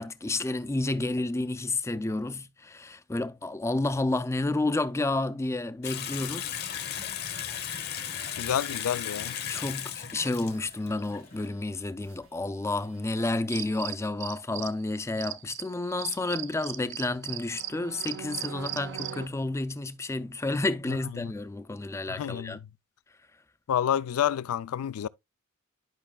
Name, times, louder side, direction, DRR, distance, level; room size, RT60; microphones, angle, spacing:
voice 1, 0.0-7.0 9.5-22.6, left 2 dB, 15° left, 0.4 m, -30 dB
Water tap faucet / Sink (filling or washing) / Bathtub (filling or washing), 5.8-11.5, left 9 dB, 50° left, 1.0 m, -36 dB
sound 1, 7.3-13.6, right 4 dB, 80° right, 3.6 m, -60 dB
voice 2, 8.4-9.4 21.2-21.3 22.1-22.6 23.7-25.1, left 9 dB, 80° left, 0.3 m, -29 dB
sound 2, 13.5-14.8 15.2-19.3, right 12 dB, 55° right, 0.5 m, -38 dB
11.0 x 5.5 x 2.2 m
head